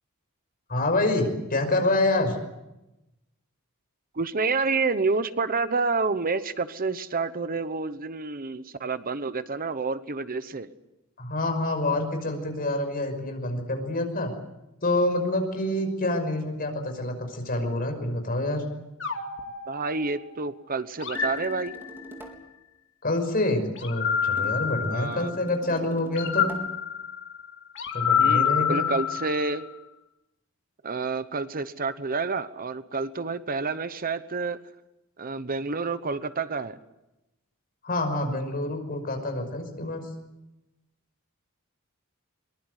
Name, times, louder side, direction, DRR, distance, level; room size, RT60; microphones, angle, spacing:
voice 1, 0.7-2.4 11.2-14.3 14.8-18.6 23.0-26.5 27.9-28.8 37.8-40.0, left 2 dB, 45° left, 6 dB, 5.7 m, -27 dB
voice 2, 4.1-10.7 19.7-21.8 24.9-25.3 28.2-29.7 30.8-34.6 35.2-36.8, right 4 dB, 40° right, 12 dB, 1.0 m, -29 dB
sound 1, 19.0-20.4 21.0-22.3 23.8-25.5 26.1-29.7, left 8 dB, 60° left, 2.6 m, -28 dB
sound 2, 21.2-22.5 24.4-26.8, equal, 10° right, 4.0 m, -44 dB
23.0 x 23.0 x 8.1 m, 0.93 s
head